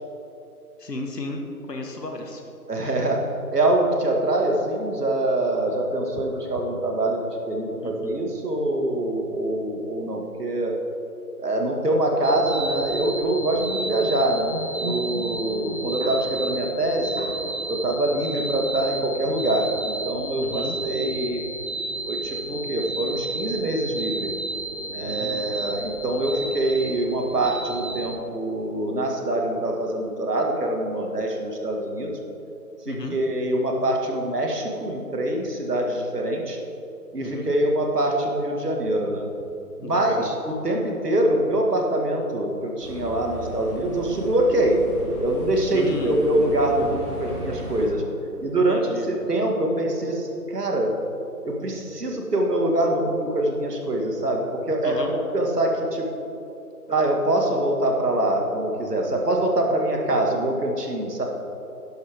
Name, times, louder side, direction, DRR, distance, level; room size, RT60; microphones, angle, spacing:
voice 1, 0.8-1.4 1.7-2.4 2.8-2.9 6.1-6.2 7.8-8.1 20.4-20.8 25.0-25.4 32.9-33.2 37.2-37.5 39.8-40.3 45.7-46.2 48.7-49.1 54.8-55.1, left 2 dB, 85° left, 2 dB, 1.8 m, -34 dB
voice 2, 2.7-3.2 3.5-7.2 7.5-10.7 11.4-17.3 17.7-21.4 22.1-24.3 24.9-32.2 32.9-36.6 37.1-39.3 39.8-44.8 45.2-48.0 48.4-50.9 51.4-55.1 55.3-56.1 56.9-61.2, right 1 dB, 75° right, 1 dB, 2.3 m, -24 dB
sound 1, 12.2-28.2, right 2 dB, 45° right, 0.5 m, -32 dB
sound 2, 42.8-47.9, equal, 15° left, 2.3 m, -35 dB
12.0 x 11.0 x 3.7 m, 2.9 s
figure-of-eight pair, 165°, 47 cm